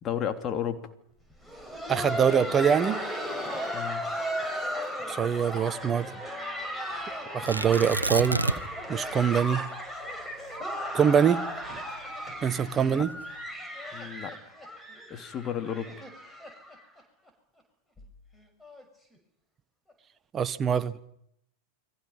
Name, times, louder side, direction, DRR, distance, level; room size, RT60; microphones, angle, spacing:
voice 1, 0.0-0.8 3.7-4.0 12.6-13.0 13.9-14.4 15.1-15.9, left 9 dB, 30° left, 7 dB, 3.1 m, -33 dB
Laughter, 1.3-17.0 17.3-17.4 18.0-18.1 18.6-18.8 19.9-20.0, equal, 10° left, 6.3 m, -35 dB
voice 2, 1.9-3.0 5.1-6.1 7.3-8.4 8.9-9.7 10.9-11.4 12.4-13.1 20.3-21.1, right 8 dB, 25° right, 14 dB, 1.5 m, -24 dB
Tearing, 7.5-8.9 9.1-9.2 9.8-12.2 12.9-13.3, right 2 dB, 85° right, 1.3 m, -30 dB
29.5 x 23.5 x 5.8 m, 0.74 s
figure-of-eight pair, 90°, 0 cm